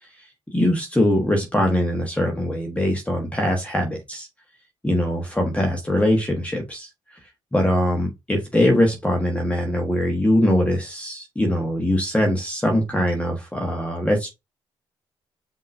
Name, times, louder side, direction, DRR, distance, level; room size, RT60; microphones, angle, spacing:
voice 1, 0.2-4.3 4.8-7.2 7.5-14.3, left 1 dB, 10° left, 1.4 m, -22 dB
5.4 x 3.0 x 2.6 m
hypercardioid pair, 50°, 13 cm